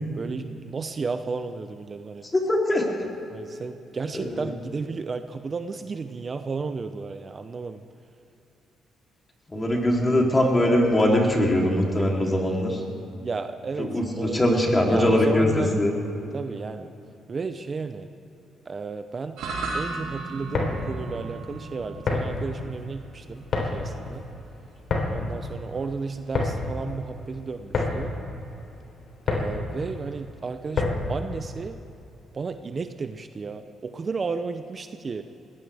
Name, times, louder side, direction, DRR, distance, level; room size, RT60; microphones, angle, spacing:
voice 1, 0.1-2.3 3.3-7.8 13.2-14.5 14.8-15.7 16.3-16.9 17.3-18.1 18.7-19.4 19.7-24.2 25.1-28.1 29.3-31.8 32.3-35.2, right 4 dB, 35° right, 9 dB, 0.7 m, -33 dB
voice 2, 2.3-2.8 4.1-4.5 9.5-12.8 13.8-15.9, left 1 dB, 20° left, -1 dB, 3.3 m, -21 dB
sound 1, 19.4-27.8, right 3 dB, 85° right, 2.9 m, -38 dB
sound 2, 20.4-31.2, left 3 dB, 60° left, 3.6 m, -30 dB
21.5 x 18.0 x 3.5 m, 2.9 s
cardioid pair, 90°, 0 cm